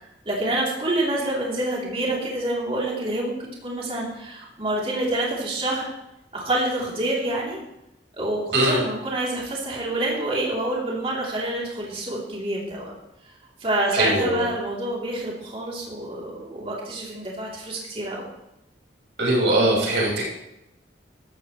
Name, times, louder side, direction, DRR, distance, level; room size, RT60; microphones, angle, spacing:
voice 1, 0.2-3.3 3.6-5.9 6.3-7.6 8.2-12.9 13.6-18.3, right 1 dB, 30° right, -4 dB, 3.3 m, -27 dB
voice 2, 13.9-14.5 19.2-20.2, right 1 dB, 70° right, -3 dB, 5.4 m, -21 dB
15.0 x 13.5 x 3.2 m, 0.90 s
head